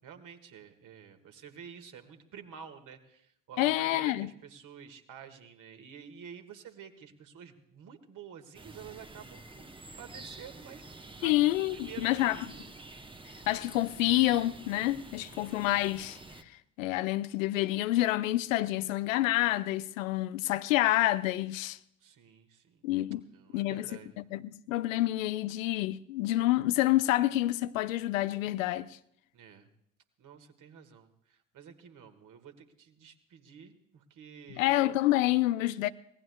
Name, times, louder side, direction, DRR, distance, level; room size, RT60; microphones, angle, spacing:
voice 1, 0.0-10.8 11.2-11.3 11.7-13.1 22.0-22.9 23.3-24.1 29.3-29.7 30.2-34.8, right 7 dB, 50° right, 1.9 m, -50 dB
voice 2, 3.6-4.3 11.2-12.4 13.5-16.2 16.8-21.8 22.8-23.2 23.5-23.9 24.2-29.0 34.5-35.9, left 16 dB, 75° left, 0.6 m, -28 dB
sound 1, 8.5-16.4, right 2 dB, 15° right, 1.1 m, -48 dB
25.5 x 18.5 x 2.3 m
figure-of-eight pair, 50°, 40 cm